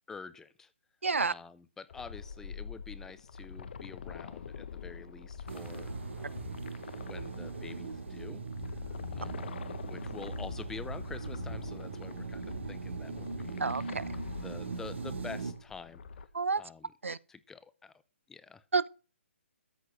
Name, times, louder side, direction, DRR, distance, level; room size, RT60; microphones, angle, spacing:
voice 1, 0.1-0.7 1.2-6.5 7.1-13.7 14.2-16.0 16.6-17.9 18.3-18.6, left 5 dB, 5° left, 0.7 m, -48 dB
voice 2, 1.0-1.3 13.6-14.0 16.3-16.6 17.0-17.2 18.7-18.9, right 4 dB, 85° right, 0.7 m, -29 dB
sound 1, 1.9-16.3, left 6 dB, 55° left, 1.3 m, -45 dB
sound 2, 5.5-15.5, right 4 dB, 70° right, 2.4 m, -40 dB
13.5 x 6.2 x 6.1 m
hypercardioid pair, 145°, 7 cm